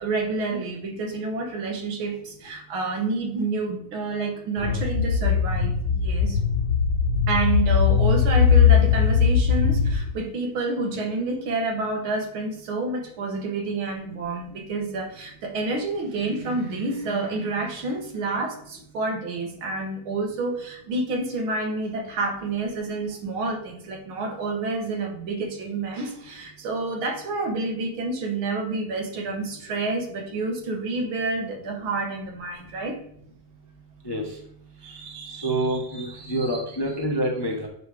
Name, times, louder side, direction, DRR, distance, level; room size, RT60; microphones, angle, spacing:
voice 1, 0.0-6.4 7.3-33.0 34.8-36.6, right 3 dB, 85° right, 2 dB, 2.2 m, -29 dB
sound 1, 4.6-9.9, left 7 dB, 55° left, 2.1 m, -20 dB
voice 2, 35.4-37.7, right 1 dB, 20° left, 0 dB, 0.7 m, -27 dB
9.4 x 3.9 x 4.9 m, 0.67 s
omnidirectional pair, 2.2 m